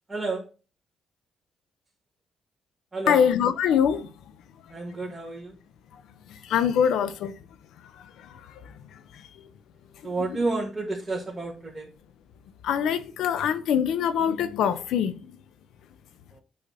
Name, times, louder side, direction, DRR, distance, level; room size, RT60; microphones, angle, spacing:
voice 1, 0.1-0.5 2.9-3.2 4.7-5.5 10.0-11.9 16.3-16.4, right 3 dB, 15° right, 2.2 m, -30 dB
voice 2, 3.1-4.1 6.4-7.4 10.3-10.4 12.6-15.2, left 8 dB, 80° left, 0.8 m, -23 dB
8.6 x 4.0 x 4.1 m
cardioid pair, 90°, 0 cm